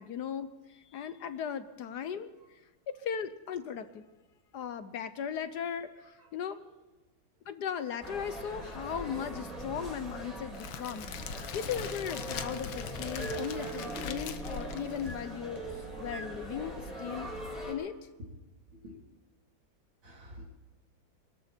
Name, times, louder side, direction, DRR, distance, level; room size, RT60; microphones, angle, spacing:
voice 1, 0.0-2.6 2.9-4.1 4.5-6.6 7.5-17.3 17.7-18.0, left 8 dB, 65° left, 12 dB, 1.2 m, -37 dB
sound 1, 8.0-17.7, right 1 dB, ahead, 4.4 m, -41 dB
Crackle, 10.5-15.6, left 7 dB, 90° left, 1.8 m, -41 dB
voice 2, 20.0-20.4, equal, 70° right, -1 dB, 4.2 m, -51 dB
24.0 x 13.5 x 4.4 m, 1.1 s
omnidirectional pair, 2.1 m